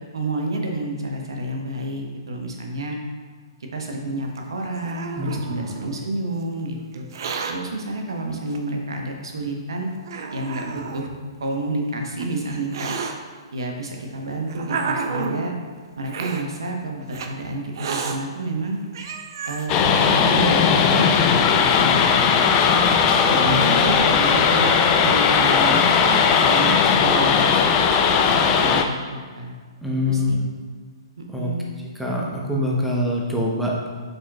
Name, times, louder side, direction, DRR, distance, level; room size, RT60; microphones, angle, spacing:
voice 1, 0.1-3.0 3.7-7.1 7.5-9.9 10.3-12.9 13.5-15.5 16.0-18.8 19.5-22.3 22.5-22.7 23.3-24.7 25.0-27.6 28.2-29.6 30.0-30.4 31.2-31.7, right 2 dB, 75° right, 1 dB, 1.0 m, -29 dB
Hiss, 4.4-6.0 6.9-7.5 8.5-8.6 9.4-9.5 10.1-11.1 11.9-13.1 14.0-15.5 16.1-16.4 17.1-17.3 17.7-18.2 18.7-18.8 18.9-19.7, right 5 dB, 55° right, 0.6 m, -30 dB
voice 2, 5.2-5.7 23.3-23.8 29.8-30.5 31.3-31.5 32.0-33.9, left 1 dB, ahead, -3 dB, 1.0 m, -24 dB
sound 1, 19.7-28.8, left 6 dB, 30° left, 0.5 m, -17 dB
8.4 x 5.3 x 2.4 m, 1.5 s
figure-of-eight pair, 120°, 3 cm